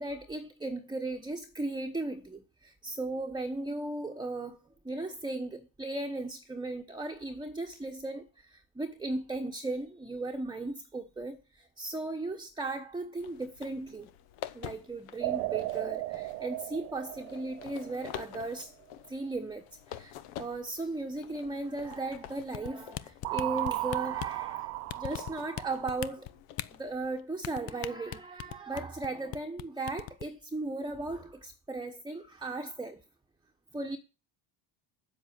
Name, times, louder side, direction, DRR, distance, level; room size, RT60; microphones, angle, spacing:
voice 1, 0.0-4.6 4.8-14.1 14.5-18.7 19.1-26.3 26.7-33.0 33.7-34.0, right 2 dB, 10° right, 1.0 m, -37 dB
sound 1, 13.2-27.2, left 11 dB, 80° left, 1.1 m, -48 dB
sound 2, 15.2-18.4 23.2-26.0, right 19 dB, 85° right, 0.8 m, -35 dB
sound 3, 22.5-24.4 24.9-25.6 25.9-26.7 27.4-29.1 29.3-29.6 29.9-30.2, left 15 dB, 60° left, 0.8 m, -37 dB
8.1 x 7.8 x 7.5 m
supercardioid pair, 85°, 49 cm